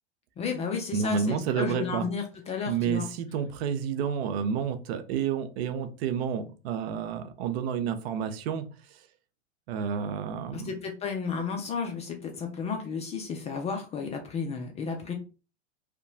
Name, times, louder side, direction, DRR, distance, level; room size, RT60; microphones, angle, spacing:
voice 1, 0.4-3.1 10.5-15.1, left 5 dB, 20° left, 3 dB, 0.3 m, -33 dB
voice 2, 0.9-2.1 2.6-8.6 8.9-9.0 9.7-10.7, right 7 dB, 60° right, 9 dB, 0.5 m, -30 dB
2.8 x 2.1 x 2.6 m, 0.33 s
hypercardioid pair, 105°, 36 cm